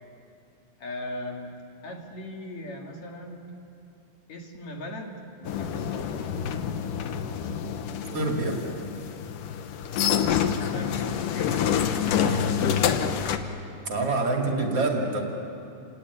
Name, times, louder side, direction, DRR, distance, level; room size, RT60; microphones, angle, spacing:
voice 1, 0.8-1.5 1.8-3.5 4.3-6.1 10.7-11.7, left 1 dB, 55° left, 1 dB, 3.4 m, -38 dB
sound 1, 5.5-13.4, left 8 dB, 75° left, 2.6 m, -27 dB
voice 2, 8.1-8.6 12.1-12.8 13.9-15.2, right 2 dB, 45° right, 0 dB, 3.3 m, -27 dB
29.5 x 18.0 x 9.8 m, 2.7 s
omnidirectional pair, 3.9 m